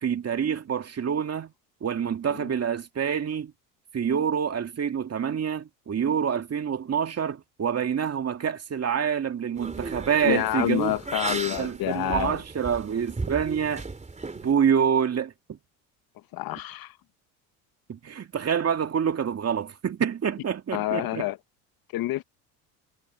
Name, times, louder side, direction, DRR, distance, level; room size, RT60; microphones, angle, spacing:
voice 1, 0.0-1.5 1.8-3.5 3.9-10.9 11.3-13.8 14.4-15.3 17.9-21.3, right 7 dB, 35° right, 2.5 m, -27 dB
sound 1, 9.6-14.5, right 3 dB, 15° right, 3.0 m, -35 dB
voice 2, 10.2-12.4 16.3-17.0 20.7-21.4 21.9-22.2, left 15 dB, 55° left, 1.3 m, -28 dB
hypercardioid pair, 75°, 42 cm